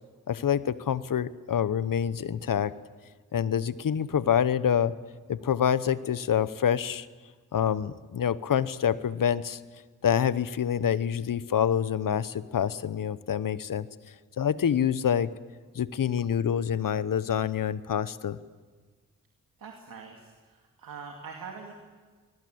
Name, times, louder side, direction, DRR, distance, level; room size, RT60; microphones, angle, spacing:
voice 1, 0.3-2.7 3.3-4.9 5.3-7.1 7.5-9.6 10.0-13.9 14.4-15.3 15.7-18.4, left 8 dB, 70° left, 16 dB, 1.0 m, -26 dB
voice 2, 19.6-21.7, right 5 dB, 85° right, 1 dB, 2.4 m, -43 dB
26.0 x 21.5 x 8.0 m, 1.5 s
cardioid pair, 45°, 34 cm